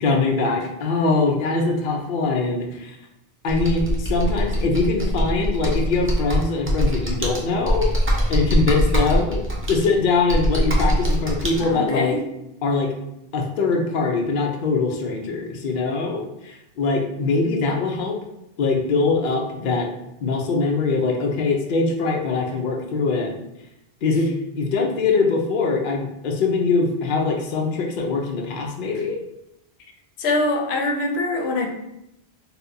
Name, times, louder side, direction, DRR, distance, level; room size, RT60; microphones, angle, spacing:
voice 1, 0.0-3.0 3.4-9.4 9.7-12.2 12.6-12.9 13.3-18.2 18.6-19.9 20.2-23.3 24.0-29.2, left 3 dB, 60° left, 1 dB, 0.7 m, -22 dB
Computer keyboard, 3.5-11.6, equal, 20° right, 0.4 m, -23 dB
voice 2, 11.6-12.2 30.2-31.7, left 2 dB, 90° left, 2 dB, 0.8 m, -23 dB
4.1 x 2.1 x 2.6 m, 0.85 s
omnidirectional pair, 1.0 m